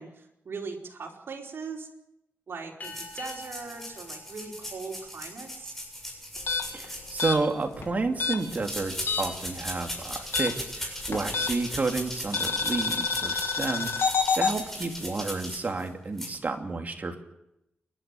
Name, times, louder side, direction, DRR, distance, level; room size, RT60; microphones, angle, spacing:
voice 1, 0.0-1.9 2.5-5.7, right 4 dB, 65° right, 0 dB, 4.7 m, -40 dB
sound 1, 2.8-5.7, left 4 dB, 40° left, 5.4 m, -47 dB
sound 2, 2.8-7.7 8.4-15.9 16.2-16.3, equal, 5° left, 7.5 m, -38 dB
sound 3, 6.4-9.5 9.7-11.8 12.3-14.6, left 5 dB, 75° left, 3.1 m, -28 dB
voice 2, 6.7-17.2, right 3 dB, 40° right, 3 dB, 2.9 m, -31 dB
28.5 x 12.0 x 9.3 m, 0.86 s
wide cardioid pair, 110°, 4 cm